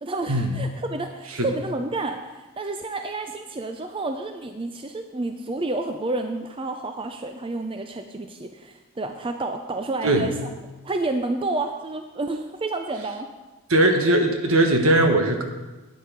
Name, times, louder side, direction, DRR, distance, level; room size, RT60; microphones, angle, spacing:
voice 1, 0.0-10.4 10.8-13.3, right 2 dB, 25° right, 6 dB, 0.5 m, -30 dB
voice 2, 13.7-15.4, right 1 dB, 65° right, 4 dB, 1.4 m, -19 dB
11.0 x 9.4 x 5.2 m, 1.2 s
head